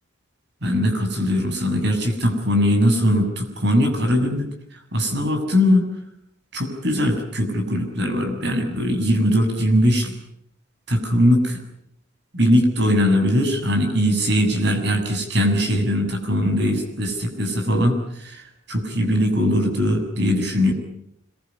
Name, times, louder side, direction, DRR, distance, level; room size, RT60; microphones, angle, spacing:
voice 1, 0.6-4.5 4.9-5.9 6.5-10.1 10.9-11.6 12.3-20.7, equal, 55° right, 5 dB, 7.4 m, -20 dB
26.0 x 23.0 x 9.8 m, 0.74 s
head